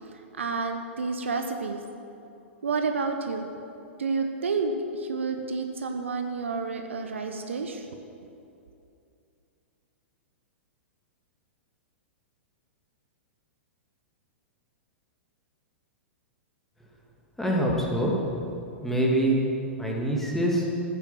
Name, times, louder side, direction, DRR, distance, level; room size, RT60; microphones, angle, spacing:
voice 1, 0.4-1.8 2.6-3.5 4.0-7.8, right 4 dB, 70° right, 5 dB, 1.1 m, -29 dB
voice 2, 17.4-18.2 18.8-19.5 19.8-20.7, right 1 dB, 5° left, -3 dB, 2.6 m, -24 dB
14.0 x 8.4 x 7.7 m, 2.6 s
figure-of-eight pair, 105°, 7 cm